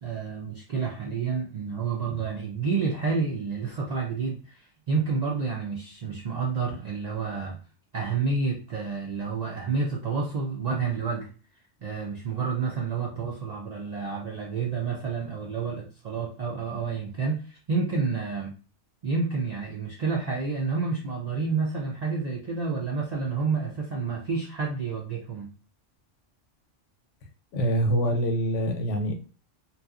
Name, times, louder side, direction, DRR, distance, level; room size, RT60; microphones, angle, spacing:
voice 1, 0.0-7.6 7.9-11.3 11.8-18.5 19.0-25.5, right 4 dB, 65° right, -2 dB, 0.4 m, -29 dB
voice 2, 27.5-29.1, right 1 dB, 80° left, 5 dB, 0.9 m, -25 dB
2.7 x 2.3 x 2.3 m, 0.36 s
omnidirectional pair, 1.3 m